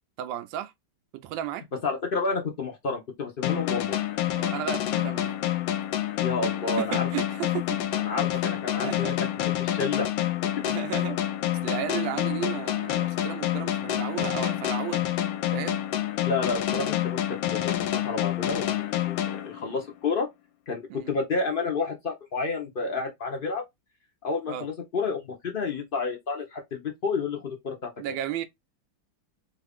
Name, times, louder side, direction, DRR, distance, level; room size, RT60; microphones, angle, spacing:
voice 1, 0.2-0.7 1.1-1.6 4.3-5.4 6.8-7.6 8.8-9.1 10.6-11.2 11.6-15.0 15.5-15.8 20.9-21.1 24.5-24.6 28.0-28.4, right 11 dB, 80° right, 1.2 m, -33 dB
voice 2, 1.8-4.0 6.2-7.1 8.0-9.3 9.6-10.1 16.2-20.3 20.7-23.6 24.2-27.9, left 4 dB, 60° left, 0.5 m, -30 dB
sound 1, 3.4-20.0, left 12 dB, 80° left, 1.3 m, -28 dB
3.1 x 2.5 x 3.4 m
omnidirectional pair, 2.1 m